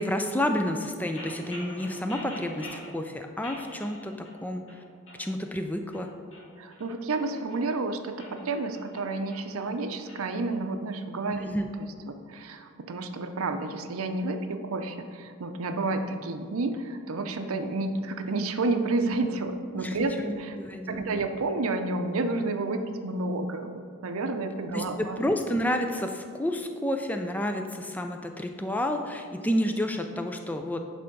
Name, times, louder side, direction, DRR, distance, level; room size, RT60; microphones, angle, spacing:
voice 1, 0.0-4.1 4.4-4.6 5.2-6.1 11.4-11.7 19.8-21.3 24.7-30.8, left 1 dB, 5° left, 5 dB, 0.4 m, -30 dB
sound 1, 1.1-2.9 3.4-4.4 4.7-5.2 5.7-7.6 8.1-10.2, left 1 dB, 60° left, 1.6 m, -45 dB
voice 2, 6.6-11.5 11.8-20.6 20.9-25.2, right 2 dB, 80° right, 7 dB, 0.6 m, -30 dB
10.0 x 3.4 x 5.3 m, 2.1 s
head